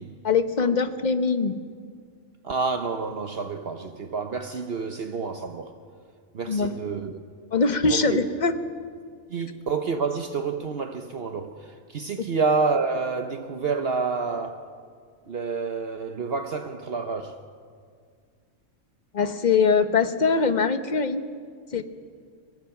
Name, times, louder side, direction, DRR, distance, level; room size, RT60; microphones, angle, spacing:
voice 1, 0.2-1.6 6.5-6.7 7.5-8.5 19.1-21.2 21.7-21.8, left 4 dB, 35° left, 1.1 m, -22 dB
voice 2, 2.4-5.8 6.3-7.2 7.9-8.2 9.3-14.7 15.3-17.4, right 4 dB, 55° right, 1.0 m, -28 dB
23.0 x 21.0 x 5.9 m
omnidirectional pair, 1.3 m